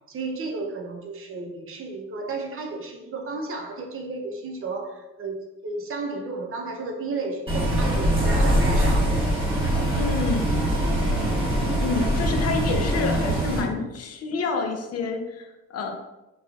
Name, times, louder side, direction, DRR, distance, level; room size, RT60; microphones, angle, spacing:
voice 1, 0.1-9.1, right 3 dB, 45° right, 1 dB, 0.5 m, -33 dB
Bus, 7.5-13.6, right 1 dB, 15° right, 1.3 m, -23 dB
voice 2, 9.9-10.6 11.8-15.9, left 4 dB, 55° left, 4 dB, 0.5 m, -28 dB
3.0 x 2.3 x 2.3 m, 1.0 s
cardioid pair, 90°, 30 cm